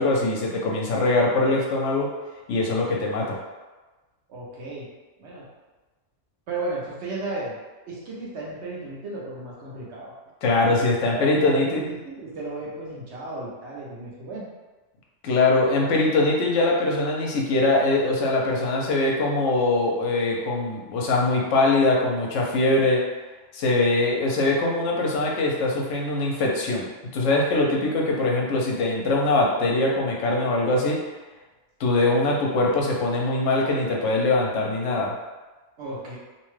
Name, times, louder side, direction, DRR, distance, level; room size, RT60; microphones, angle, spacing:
voice 1, 0.0-2.1 2.5-3.4 10.4-11.8 15.2-23.0 23.5-26.8 27.1-31.0 31.8-35.1, left 2 dB, 75° left, -1 dB, 1.0 m, -22 dB
voice 2, 4.3-4.9 5.2-5.5 6.5-7.5 7.9-10.1 10.7-10.8 11.1-14.5 35.8-36.2, right 2 dB, 65° right, -5 dB, 1.0 m, -34 dB
2.8 x 2.2 x 3.1 m, 1.2 s
omnidirectional pair, 1.3 m